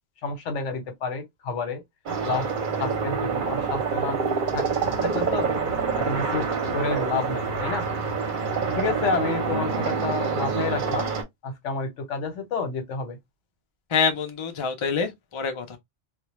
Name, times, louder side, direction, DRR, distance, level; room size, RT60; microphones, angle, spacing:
voice 1, 0.2-1.8 2.2-2.5 2.8-4.2 4.5-4.7 5.0-5.5 6.0-6.4 6.7-7.8 8.8-11.1 11.4-13.2, left 4 dB, 75° left, 1.1 m, -29 dB
sound 1, 2.1-11.2, right 5 dB, 50° right, 0.7 m, -26 dB
voice 2, 13.9-15.8, left 5 dB, 55° left, 0.3 m, -26 dB
2.2 x 2.1 x 2.9 m
omnidirectional pair, 1.3 m